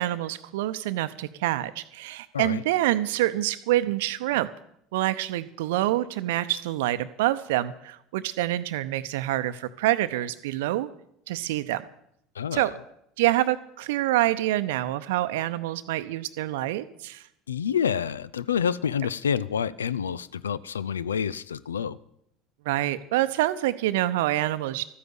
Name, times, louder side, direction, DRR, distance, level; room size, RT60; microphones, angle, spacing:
voice 1, 0.0-4.5 4.9-10.9 11.3-11.8 12.5-12.7 13.2-17.2 22.6-24.8, right 15 dB, 60° right, 13 dB, 0.7 m, -26 dB
voice 2, 12.4-12.7 17.5-22.0, left 7 dB, 75° left, 18 dB, 0.5 m, -28 dB
13.5 x 9.7 x 7.9 m, 0.75 s
figure-of-eight pair, 65°, 0 cm